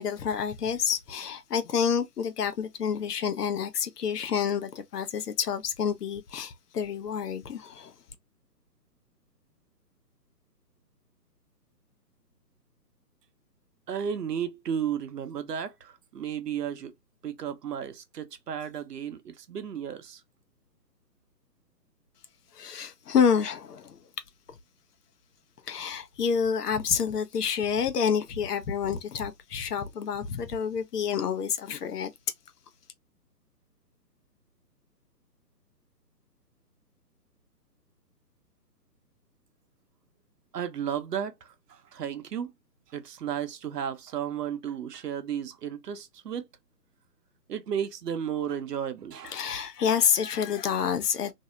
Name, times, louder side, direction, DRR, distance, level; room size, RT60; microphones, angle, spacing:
voice 1, 0.0-7.9 22.5-24.0 25.7-32.1 49.2-51.3, left 7 dB, 65° left, 0.7 m, -28 dB
voice 2, 13.9-16.9 17.2-20.2 40.5-42.5 42.9-46.5 47.5-49.3, right 8 dB, 70° right, 0.7 m, -33 dB
2.6 x 2.1 x 2.3 m
hypercardioid pair, 155°, 50 cm